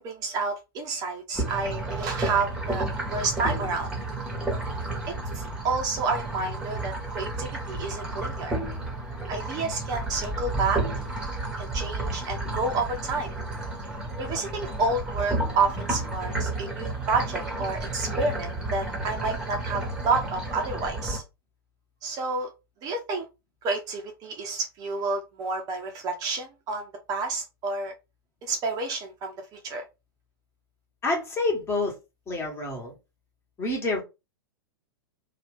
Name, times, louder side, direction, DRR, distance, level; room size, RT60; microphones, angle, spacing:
voice 1, 0.0-2.8 3.1-3.9 5.3-8.6 9.3-10.8 11.6-13.3 14.2-21.2 22.0-22.5 22.8-23.2 23.6-27.9 28.4-29.8, right 3 dB, 30° right, 0.7 m, -29 dB
sound 1, 1.3-21.2, right 2 dB, 5° right, 1.0 m, -32 dB
voice 2, 31.0-31.9 32.3-32.9 33.6-34.0, left 2 dB, 20° left, 1.2 m, -27 dB
2.8 x 2.3 x 3.5 m
figure-of-eight pair, 100°, 12 cm